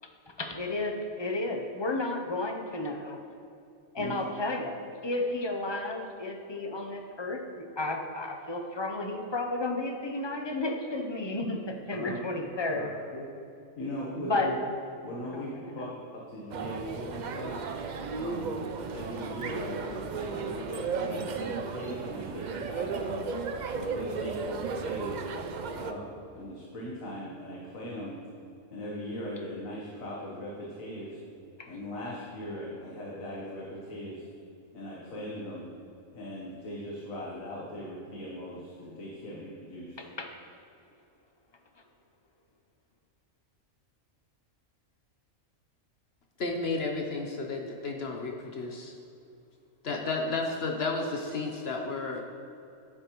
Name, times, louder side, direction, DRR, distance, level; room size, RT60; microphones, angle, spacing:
voice 1, 0.4-3.2 3.9-4.8 5.0-12.8 14.2-14.5 15.3-15.8 31.6-31.7 40.0-40.3, left 2 dB, 30° left, 3 dB, 0.5 m, -32 dB
voice 2, 13.8-14.6 15.0-15.9 16.3-17.6 18.1-18.5 18.9-23.2 23.7-25.2 25.8-26.1 26.4-28.2 28.7-31.2 31.7-34.2 34.7-35.7 36.1-40.0, equal, 85° left, -4 dB, 1.6 m, -39 dB
sound 1, 16.5-25.9, right 5 dB, 80° right, 0.4 m, -35 dB
voice 3, 46.4-48.9 49.8-52.2, left 3 dB, 55° left, 2 dB, 0.9 m, -32 dB
10.5 x 8.3 x 3.0 m, 2.7 s
omnidirectional pair, 1.4 m